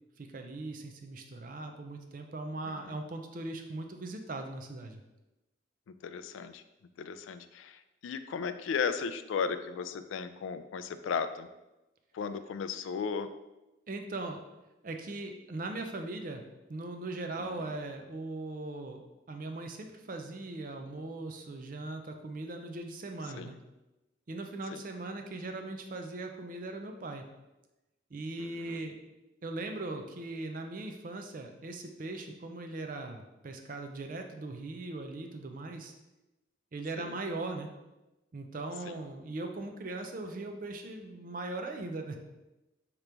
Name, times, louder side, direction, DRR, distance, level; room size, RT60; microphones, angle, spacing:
voice 1, 0.2-5.0 13.9-14.4 14.8-16.4 16.7-23.6 24.3-27.3 28.1-29.0 29.4-35.9 36.7-37.7 38.3-42.2, right 2 dB, 45° right, 5 dB, 0.4 m, -39 dB
voice 2, 2.7-3.0 6.0-6.6 7.0-11.5 12.1-13.3 17.4-17.6 23.4-23.5 24.7-24.8 28.4-28.8 37.0-37.1 38.8-39.0, left 6 dB, 85° left, 11 dB, 0.3 m, -36 dB
5.0 x 3.0 x 3.3 m, 1.0 s
head